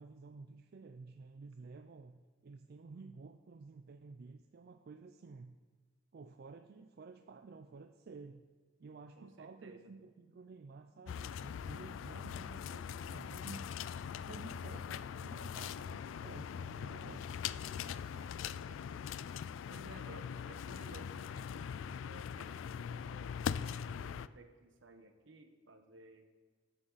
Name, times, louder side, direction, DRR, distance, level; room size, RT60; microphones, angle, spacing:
voice 1, 0.0-5.6 6.1-8.5 8.8-13.7 14.3-17.3, right 4 dB, 55° right, 8 dB, 0.4 m, -53 dB
voice 2, 9.2-10.0 18.1-19.2 19.7-23.3 23.9-26.3, right 2 dB, 75° right, 6 dB, 1.1 m, -57 dB
sound 1, 11.1-24.3, left 7 dB, 80° left, 0.3 m, -42 dB
14.0 x 7.7 x 4.0 m, 1.5 s
head